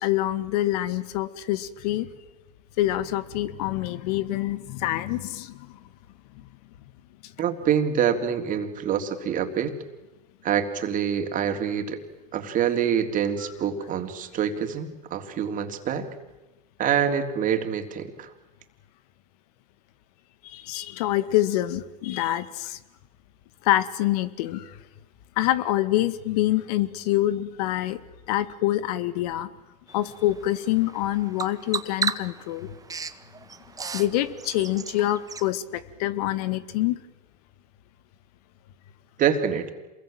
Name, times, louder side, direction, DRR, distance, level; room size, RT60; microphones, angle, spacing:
voice 1, 0.0-2.1 2.8-5.7 6.4-6.5 7.2-7.3 20.4-22.8 23.6-24.8 25.4-28.0 28.3-29.5 29.9-32.7 33.9-37.0, left 14 dB, 70° left, 15 dB, 1.9 m, -26 dB
voice 2, 7.4-9.7 10.4-12.0 12.3-16.1 16.8-18.3 39.2-39.7, right 8 dB, 40° right, 6 dB, 3.4 m, -26 dB
Bird vocalization bird call bird song, 29.9-35.5, right 5 dB, 15° right, 1.5 m, -35 dB
27.5 x 21.5 x 9.1 m, 1.1 s
hypercardioid pair, 100°, 21 cm